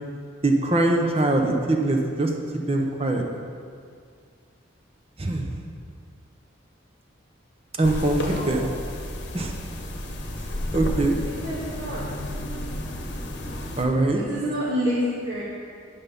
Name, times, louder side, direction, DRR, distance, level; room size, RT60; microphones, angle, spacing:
voice 1, 0.4-2.3 2.7-3.2 5.2-5.5 7.8-8.2 8.5-8.6 9.3-9.5 10.7-11.2 13.8-14.2, right 2 dB, 30° right, 2 dB, 0.8 m, -22 dB
sound 1, 7.8-13.8, left 1 dB, 55° left, 1.0 m, -32 dB
voice 2, 8.1-8.7 11.2-12.1 14.1-15.4, equal, 60° right, -10 dB, 1.9 m, -28 dB
10.0 x 5.7 x 5.2 m, 2.2 s
head